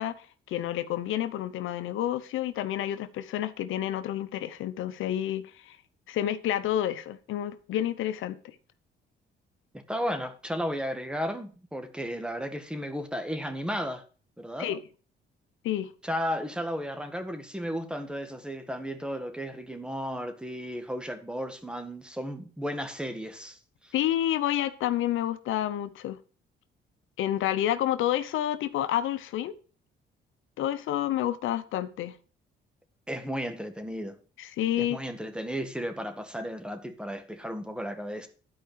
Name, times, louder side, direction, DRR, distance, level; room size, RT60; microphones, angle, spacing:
voice 1, 0.0-5.8 6.1-8.5 14.6-14.8 15.6-15.9 23.9-26.2 27.2-29.5 30.6-32.1 34.4-35.0, left 12 dB, 85° left, 0.8 m, -29 dB
voice 2, 9.7-14.0 14.4-14.8 16.0-23.9 33.1-34.2 34.8-38.3, equal, 5° right, 1.8 m, -34 dB
12.0 x 5.0 x 6.8 m
cardioid pair, 90°, 20 cm